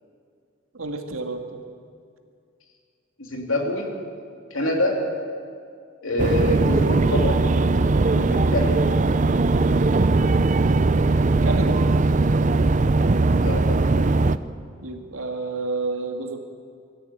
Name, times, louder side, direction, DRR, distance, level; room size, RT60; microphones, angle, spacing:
voice 1, 0.7-1.6 10.6-11.8 14.8-16.4, right 3 dB, 90° right, 4 dB, 2.2 m, -30 dB
voice 2, 3.2-3.9 4.5-5.0 6.0-7.4 8.1-8.8 13.4-13.8, left 1 dB, 75° left, 1 dB, 3.3 m, -25 dB
sound 1, 6.2-14.4, right 3 dB, 35° right, 0.5 m, -19 dB
23.0 x 14.0 x 8.8 m, 2.3 s
head